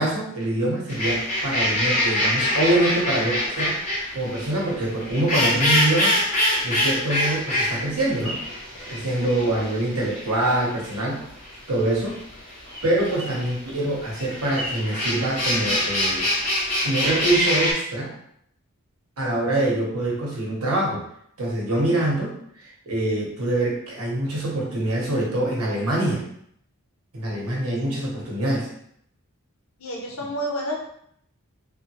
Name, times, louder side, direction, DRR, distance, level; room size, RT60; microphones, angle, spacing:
voice 1, 0.0-3.8 4.1-6.2 6.6-8.4 8.9-11.2 11.7-12.2 12.8-16.3 16.8-18.1 19.2-21.0 21.4-22.4 22.9-26.3 27.1-28.7, right 1 dB, 85° right, -3 dB, 1.0 m, -24 dB
sound 1, 0.9-17.7, left 1 dB, 30° left, 0.8 m, -25 dB
voice 2, 9.2-9.5 29.8-30.8, equal, 70° left, 0 dB, 0.7 m, -30 dB
3.5 x 2.2 x 3.0 m, 0.70 s
head